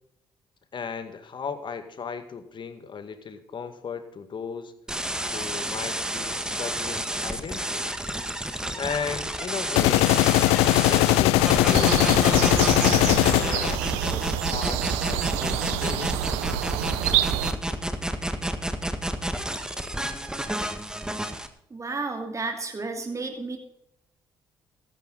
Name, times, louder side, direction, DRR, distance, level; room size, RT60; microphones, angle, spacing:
voice 1, 0.7-4.7 5.3-7.9 8.8-10.2 10.9-16.1, left 6 dB, 50° left, 9 dB, 2.0 m, -36 dB
sound 1, 4.9-21.5, right 1 dB, 5° right, 1.7 m, -30 dB
sound 2, 9.8-13.8, left 18 dB, 85° left, 0.4 m, -20 dB
sound 3, 11.7-17.5, right 14 dB, 85° right, 0.8 m, -28 dB
voice 2, 21.7-23.6, right 3 dB, 30° right, 4 dB, 2.6 m, -32 dB
14.5 x 11.5 x 4.1 m, 0.75 s
supercardioid pair, 55°, 10 cm